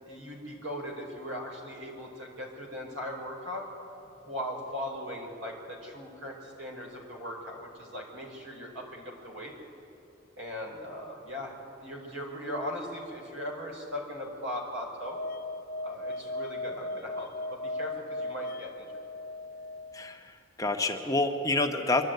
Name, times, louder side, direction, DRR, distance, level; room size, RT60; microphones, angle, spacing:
voice 1, 0.0-3.6 4.2-9.5 10.4-15.2 15.8-18.9, equal, 85° right, 0 dB, 4.7 m, -39 dB
sound 1, 15.1-20.1, left 2 dB, 45° left, 0.6 m, -37 dB
voice 2, 19.9-22.0, left 2 dB, 15° left, 4 dB, 1.0 m, -28 dB
24.5 x 11.5 x 9.2 m, 2.8 s
head